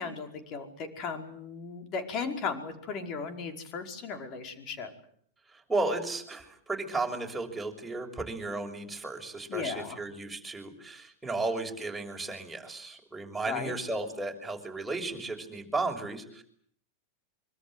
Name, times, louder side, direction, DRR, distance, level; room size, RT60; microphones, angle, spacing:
voice 1, 0.0-4.9 9.5-10.0 13.5-13.7, left 5 dB, 35° left, 6 dB, 5.1 m, -36 dB
voice 2, 5.5-16.4, right 2 dB, 5° right, 1 dB, 6.6 m, -34 dB
25.5 x 25.0 x 8.0 m, 0.63 s
figure-of-eight pair, 90°, 0 cm